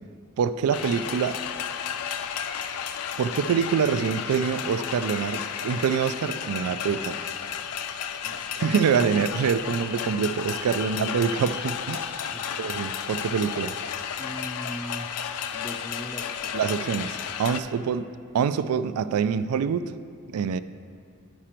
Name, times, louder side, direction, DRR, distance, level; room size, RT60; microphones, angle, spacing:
voice 1, 0.4-1.4 3.2-7.3 8.6-12.2 12.6-13.8 16.5-18.1 18.3-19.9 20.3-20.6, right 7 dB, 85° right, 12 dB, 0.3 m, -25 dB
sound 1, 0.7-17.6, left 8 dB, 85° left, 0.4 m, -33 dB
voice 2, 8.2-9.4 10.9-11.1 12.3-12.6 14.2-15.1 15.4-16.6 17.5-17.8, equal, 20° left, 5 dB, 0.4 m, -40 dB
10.0 x 5.0 x 4.4 m, 2.2 s
head